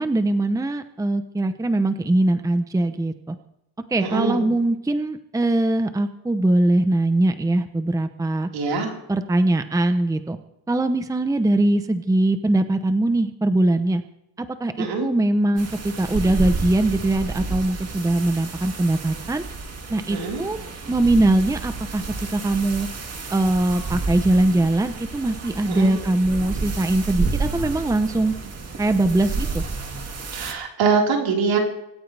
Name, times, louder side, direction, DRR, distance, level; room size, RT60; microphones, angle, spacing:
voice 1, 0.0-3.4 3.9-8.5 9.1-10.4 10.7-14.0 14.4-19.5 19.9-20.6 20.9-22.0 22.3-22.9 23.3-28.3 28.8-29.6, right 2 dB, 5° right, 9 dB, 0.9 m, -21 dB
voice 2, 4.0-4.4 8.5-8.9 14.8-15.1 20.1-20.4 25.7-25.9 30.3-31.6, right 5 dB, 75° right, 0 dB, 4.7 m, -23 dB
sound 1, 15.6-30.5, right 3 dB, 30° right, 2.4 m, -31 dB
25.0 x 13.5 x 3.5 m, 0.85 s
cardioid pair, 115°, 46 cm